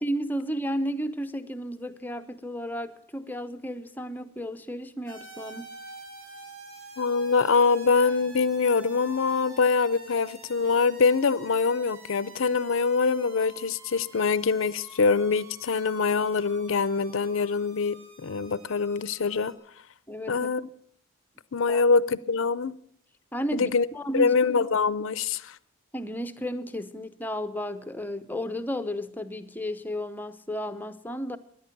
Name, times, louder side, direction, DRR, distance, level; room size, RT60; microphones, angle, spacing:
voice 1, 0.0-5.7 20.1-20.5 21.7-21.8 23.3-24.4 25.9-31.4, equal, 10° left, 0.6 m, -33 dB
sound 1, 5.1-19.5, right 2 dB, 75° right, 3.4 m, -48 dB
voice 2, 7.0-19.5 20.3-20.6 21.5-22.8 23.5-23.9 24.1-25.6, left 4 dB, 70° left, 0.5 m, -24 dB
17.0 x 10.5 x 6.0 m
head